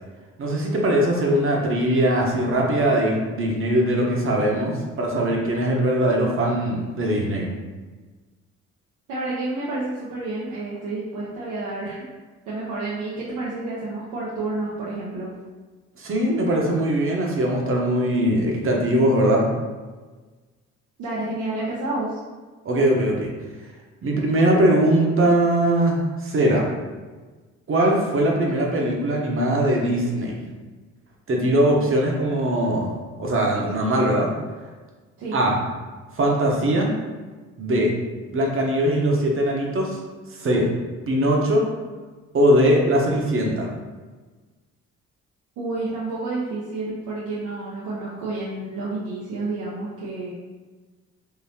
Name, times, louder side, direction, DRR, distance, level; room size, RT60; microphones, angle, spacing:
voice 1, 0.4-7.5 16.0-19.5 22.6-23.3 24.0-26.6 27.7-30.3 31.3-32.9 33.2-34.3 35.3-35.6 36.1-36.9 37.6-37.9 38.3-40.0 40.3-40.7 41.1-41.6 42.3-43.7, right 1 dB, 45° right, -1 dB, 0.9 m, -21 dB
voice 2, 9.1-12.0 12.5-15.3 21.0-22.2 35.2-35.4 45.6-50.3, right 2 dB, 85° right, -7 dB, 0.8 m, -29 dB
3.8 x 2.8 x 2.7 m, 1.3 s
cardioid pair, 90°, 30 cm